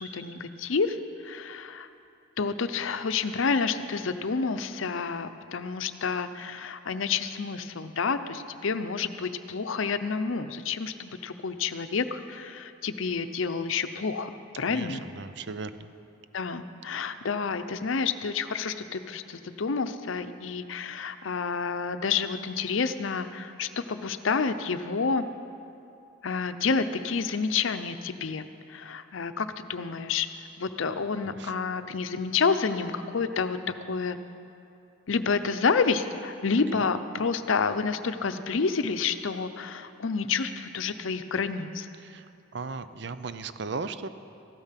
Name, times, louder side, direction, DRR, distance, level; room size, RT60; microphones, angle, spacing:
voice 1, 0.0-1.0 1.2-1.9 2.4-14.3 14.6-15.0 16.3-25.3 26.2-30.3 30.6-33.6 33.9-34.2 35.1-41.9, left 5 dB, 80° left, 10 dB, 0.6 m, -29 dB
voice 2, 14.7-15.9 31.4-31.5 36.7-36.8 42.0-42.3 42.5-44.1, right 4 dB, 55° right, 12 dB, 0.6 m, -36 dB
14.5 x 12.5 x 5.8 m, 2.6 s
head